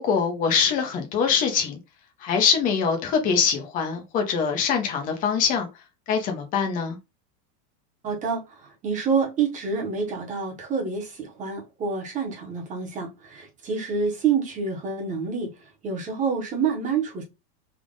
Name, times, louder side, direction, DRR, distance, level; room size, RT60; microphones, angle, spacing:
voice 1, 0.0-1.8 2.2-5.7 6.1-7.0, left 6 dB, 15° left, 0.5 m, -23 dB
voice 2, 8.0-15.5 15.8-17.2, right 5 dB, 15° right, 0.9 m, -27 dB
3.6 x 2.4 x 3.6 m
supercardioid pair, 160°, 49 cm